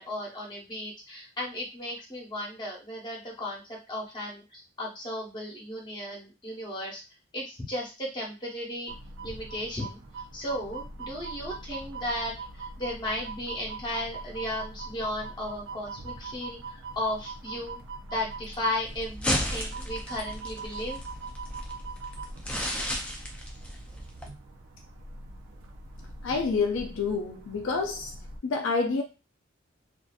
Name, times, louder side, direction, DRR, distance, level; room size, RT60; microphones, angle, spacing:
voice 1, 0.0-7.0 7.3-8.9 9.2-10.0 10.3-17.8 18.1-21.0, left 1 dB, 20° left, 1.0 m, -35 dB
sound 1, 8.9-28.4, right 3 dB, 75° right, 0.5 m, -42 dB
sound 2, 18.9-24.3, equal, 5° left, 0.4 m, -34 dB
voice 2, 26.2-28.1 28.4-29.0, left 4 dB, 70° left, 0.4 m, -28 dB
2.6 x 2.5 x 2.3 m
head